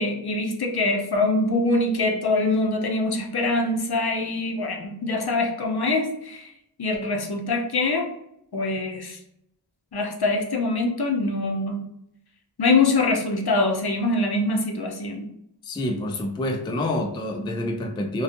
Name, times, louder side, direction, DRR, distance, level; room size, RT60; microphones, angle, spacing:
voice 1, 0.0-6.5 6.8-8.1 8.5-9.2 9.9-11.8 12.6-15.3, left 2 dB, 55° left, 3 dB, 0.6 m, -24 dB
voice 2, 15.6-18.2, left 1 dB, 10° left, 3 dB, 0.3 m, -27 dB
2.6 x 2.3 x 2.5 m, 0.79 s
wide cardioid pair, 45°, 47 cm